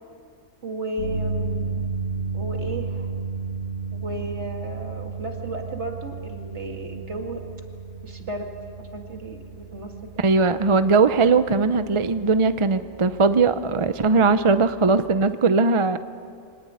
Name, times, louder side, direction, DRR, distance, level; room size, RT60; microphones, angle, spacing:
voice 1, 0.6-1.9 2.3-3.1 3.9-7.5 8.0-8.5 8.8-10.1, right 2 dB, 60° right, 3 dB, 2.5 m, -34 dB
sound 1, 1.0-15.2, right 4 dB, 70° left, 6.6 m, -33 dB
voice 2, 10.2-16.0, right 4 dB, 35° right, 11 dB, 0.5 m, -19 dB
24.5 x 18.5 x 9.5 m, 2.3 s
omnidirectional pair, 1.4 m